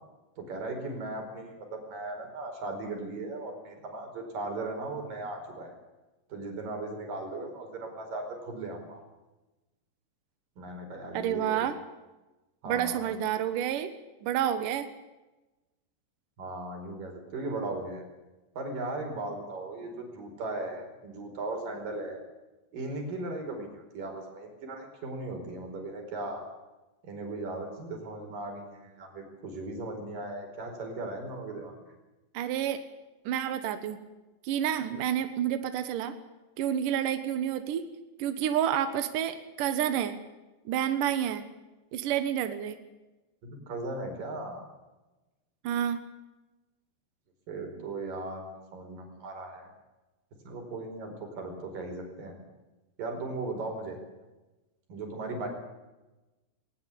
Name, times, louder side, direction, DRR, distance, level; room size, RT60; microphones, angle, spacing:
voice 1, 0.4-5.7 6.3-9.0 10.6-11.7 12.6-13.1 16.4-18.0 18.5-22.2 22.7-26.4 27.0-31.8 43.4-44.6 47.5-49.7 50.4-52.4 53.0-54.0 54.9-55.5, right 2 dB, 45° right, 3 dB, 6.1 m, -37 dB
voice 2, 11.1-11.8 12.7-13.9 14.2-14.9 32.3-32.8 33.3-34.0 34.4-36.2 36.6-37.9 38.2-40.2 40.7-41.5 41.9-42.8 45.6-46.0, right 10 dB, 75° right, 9 dB, 2.0 m, -29 dB
20.5 x 19.0 x 8.6 m, 1.1 s
omnidirectional pair, 5.7 m